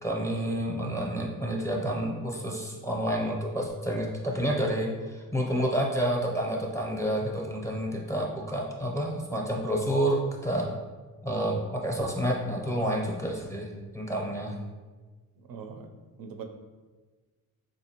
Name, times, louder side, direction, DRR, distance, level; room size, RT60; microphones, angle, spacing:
voice 1, 0.0-10.7 11.2-14.6, equal, 10° left, -2 dB, 0.6 m, -29 dB
voice 2, 15.4-15.9 16.2-16.4, right 6 dB, 70° right, 4 dB, 0.5 m, -41 dB
3.8 x 2.6 x 2.8 m, 1.3 s
cardioid pair, 95°, 36 cm